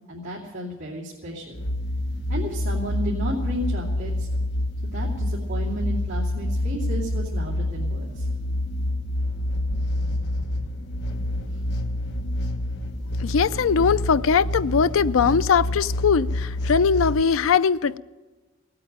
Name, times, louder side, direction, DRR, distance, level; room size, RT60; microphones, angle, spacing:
voice 1, 0.1-1.6 2.3-4.3 4.8-8.3, right 1 dB, 65° right, 2.7 m, -33 dB
sound 1, 1.5-17.2, left 1 dB, 55° left, 1.4 m, -27 dB
voice 2, 13.2-18.0, left 6 dB, 75° left, 0.5 m, -20 dB
17.5 x 8.8 x 8.8 m
head